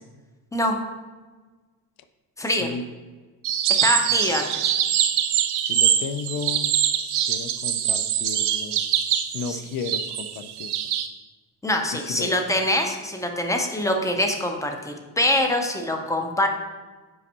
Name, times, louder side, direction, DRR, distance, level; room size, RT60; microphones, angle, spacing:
voice 1, 2.4-2.7 3.8-4.7 9.5-9.6 11.6-16.5, left 1 dB, 10° left, 3 dB, 0.4 m, -24 dB
sound 1, 3.4-11.1, right 10 dB, 80° right, 0.7 m, -23 dB
voice 2, 5.6-6.7 7.2-8.8 9.3-10.7 11.9-12.3, left 5 dB, 60° left, 11 dB, 0.5 m, -33 dB
5.5 x 5.1 x 5.4 m, 1.3 s
cardioid pair, 175°, 39 cm